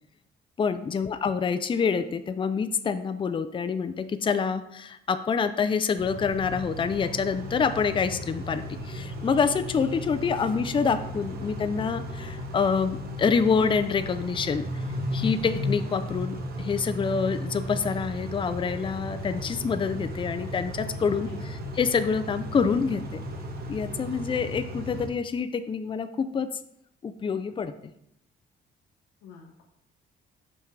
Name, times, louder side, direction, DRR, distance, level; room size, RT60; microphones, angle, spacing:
voice 1, 0.6-14.7 15.1-23.2 23.7-26.5 27.0-27.7, left 5 dB, 25° left, 10 dB, 0.4 m, -27 dB
Car / Idling / Accelerating revving vroom, 6.0-25.1, left 1 dB, 50° right, 1.0 m, -35 dB
voice 2, 21.1-21.6 29.2-29.6, left 6 dB, 85° left, -2 dB, 0.9 m, -46 dB
5.6 x 5.3 x 3.2 m, 0.77 s
cardioid pair, 90°, 20 cm